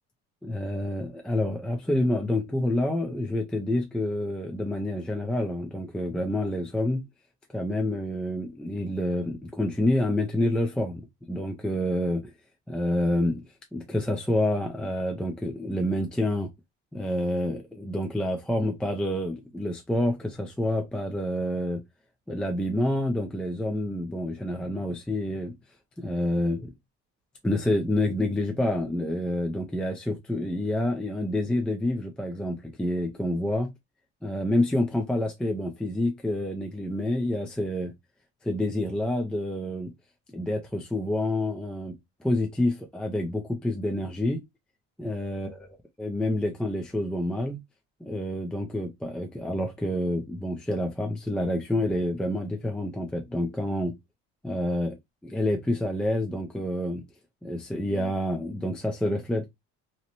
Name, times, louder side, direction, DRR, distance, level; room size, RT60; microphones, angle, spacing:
voice 1, 0.4-7.0 7.5-12.3 12.7-16.5 16.9-21.8 22.3-25.5 26.0-26.7 27.4-33.7 34.2-37.9 38.4-39.9 40.3-44.4 45.0-45.5 46.0-47.6 48.0-54.0 54.4-55.0 55.2-57.0 57.4-59.5, left 1 dB, 5° left, 0.3 m, -28 dB
2.6 x 2.0 x 2.8 m
cardioid pair, 115°, 29 cm